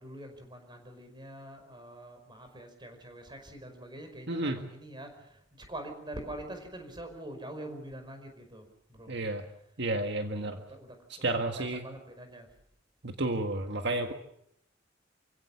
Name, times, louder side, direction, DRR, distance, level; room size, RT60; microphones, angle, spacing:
voice 1, 0.0-8.6 8.9-9.2 10.4-12.5, right 1 dB, 25° right, 6 dB, 5.3 m, -45 dB
voice 2, 4.3-4.6 9.1-9.4 9.8-10.6 11.1-11.8 13.0-14.1, right 2 dB, 60° right, 5 dB, 1.7 m, -31 dB
28.5 x 16.5 x 7.3 m, 0.77 s
head